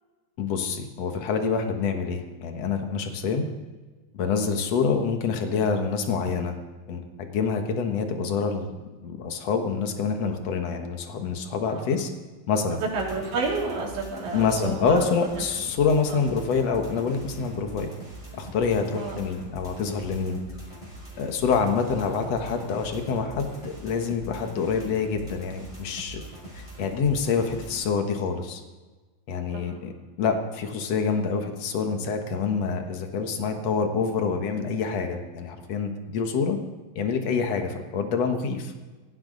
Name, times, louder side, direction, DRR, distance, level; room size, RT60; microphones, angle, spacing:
voice 1, 0.4-3.4 4.1-6.5 6.9-8.7 9.0-12.1 12.5-12.8 14.3-17.9 18.4-20.4 21.2-26.2 26.5-28.6 29.3-29.9 30.2-36.6 36.9-38.7, left 5 dB, 65° left, 5 dB, 1.6 m, -26 dB
voice 2, 12.7-15.1 16.1-16.2 19.0-19.2 29.5-29.8, right 4 dB, 85° right, -2 dB, 5.6 m, -30 dB
sound 1, 12.8-27.8, right 1 dB, 5° left, 5.1 m, -42 dB
17.5 x 16.0 x 4.0 m, 1.3 s
omnidirectional pair, 5.1 m